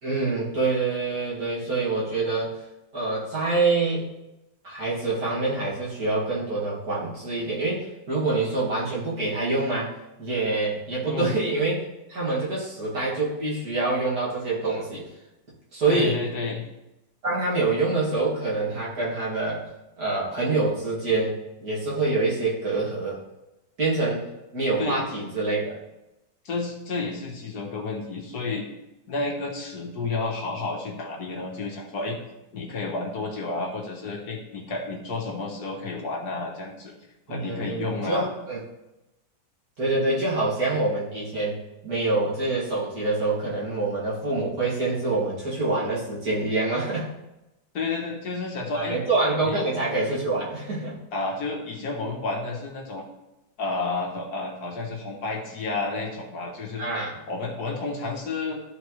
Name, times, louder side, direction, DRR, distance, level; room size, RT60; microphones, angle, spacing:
voice 1, 0.0-2.5 2.9-4.1 4.6-11.8 12.1-15.1 15.7-16.2 17.2-19.7 20.0-21.3 21.6-23.2 23.8-24.2 24.5-25.8 37.3-38.6 39.8-47.1 48.7-50.9 56.8-57.2, right 3 dB, 50° right, -7 dB, 2.8 m, -26 dB
voice 2, 15.9-16.7 24.8-25.0 26.4-28.6 29.1-32.2 32.5-36.9 37.3-38.3 47.7-49.0 49.4-49.6 51.1-53.0 53.6-56.8 57.3-58.6, left 3 dB, 55° left, -1 dB, 1.7 m, -31 dB
13.0 x 4.4 x 3.2 m, 0.94 s
omnidirectional pair, 2.1 m